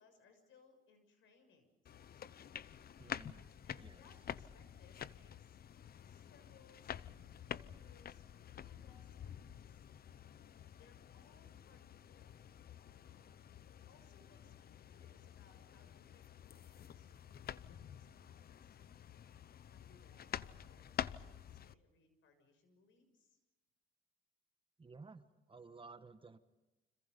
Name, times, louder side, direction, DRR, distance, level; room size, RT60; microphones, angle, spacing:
voice 1, 0.0-2.5 3.6-5.6 6.0-9.9 10.7-12.3 12.9-18.8 19.7-23.4, left 4 dB, 75° left, 8 dB, 6.6 m, -69 dB
sound 1, 1.9-21.7, left 9 dB, 50° left, 0.8 m, -49 dB
voice 2, 3.0-3.5 3.8-4.0 24.8-26.4, right 4 dB, 25° right, 9 dB, 1.5 m, -55 dB
30.0 x 26.5 x 5.4 m, 1.0 s
cardioid pair, 90°, 20 cm